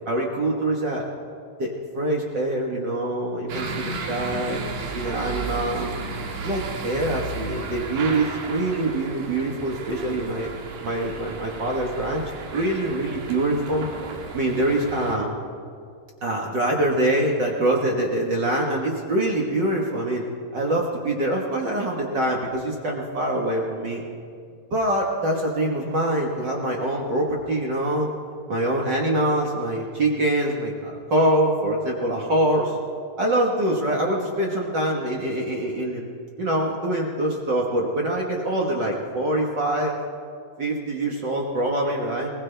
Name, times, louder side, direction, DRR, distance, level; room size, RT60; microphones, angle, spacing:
voice 1, 0.1-1.0 1.6-5.9 6.4-10.5 10.8-12.2 12.5-13.9 14.3-15.3 16.2-20.2 20.5-24.0 24.7-28.1 28.5-32.8 33.2-36.1 36.4-39.9 40.6-42.3, right 1 dB, 50° right, -1 dB, 1.4 m, -24 dB
sound 1, 3.5-15.2, right 4 dB, 70° right, 2.8 m, -34 dB
20.5 x 19.5 x 3.4 m, 2.3 s
omnidirectional pair, 3.9 m